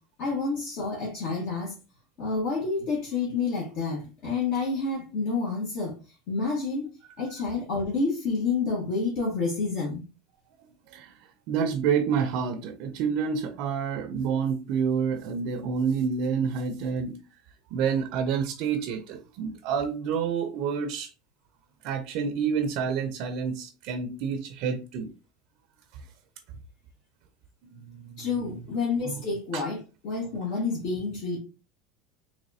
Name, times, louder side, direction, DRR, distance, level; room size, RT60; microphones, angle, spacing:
voice 1, 0.2-1.7 2.2-5.9 6.3-6.8 7.2-10.0 28.2-29.8 30.0-31.4, left 4 dB, 60° left, 1.5 m, -29 dB
voice 2, 10.9-17.2 17.7-21.1 21.8-25.1 27.7-28.6 29.0-29.2 29.5-29.6, right 6 dB, 60° right, 0.5 m, -28 dB
4.0 x 3.0 x 2.6 m
supercardioid pair, 135°, 0 cm